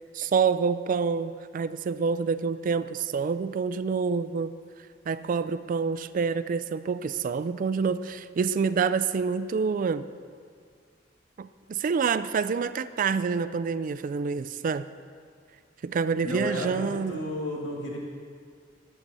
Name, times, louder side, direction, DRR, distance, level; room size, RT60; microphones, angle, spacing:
voice 1, 0.1-4.5 5.1-10.1 11.4-14.9 15.8-17.2, right 5 dB, 45° right, 13 dB, 0.3 m, -27 dB
voice 2, 16.2-18.0, equal, 80° left, -2 dB, 2.0 m, -32 dB
10.5 x 7.5 x 5.5 m, 2.1 s
head